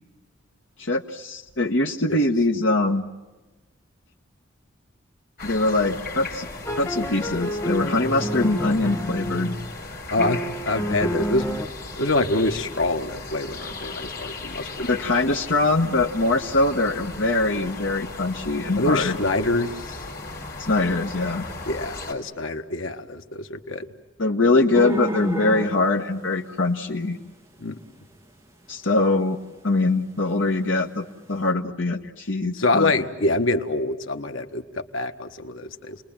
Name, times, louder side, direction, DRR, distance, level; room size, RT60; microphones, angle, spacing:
voice 1, 0.8-3.0 5.4-6.5 6.7-9.5 14.8-19.2 20.7-21.5 24.2-27.2 28.7-29.4 29.6-32.9, left 2 dB, 70° left, 1 dB, 1.4 m, -23 dB
sound 1, 5.4-22.1, left 3 dB, 50° left, 4.6 m, -37 dB
sound 2, 6.7-9.8 10.2-11.7, equal, 15° left, 1.3 m, -29 dB
voice 2, 10.6-11.5 12.0-14.9 18.7-20.0 21.7-23.9 27.6-27.8 32.5-36.0, left 2 dB, 90° left, 6 dB, 1.7 m, -25 dB
sound 3, 24.7-27.6 27.9-28.0 29.1-29.5 29.8-29.9 30.3-30.4 31.0-31.1 31.2-31.5, equal, 15° right, 2.5 m, -30 dB
30.0 x 21.5 x 9.0 m, 1.1 s
head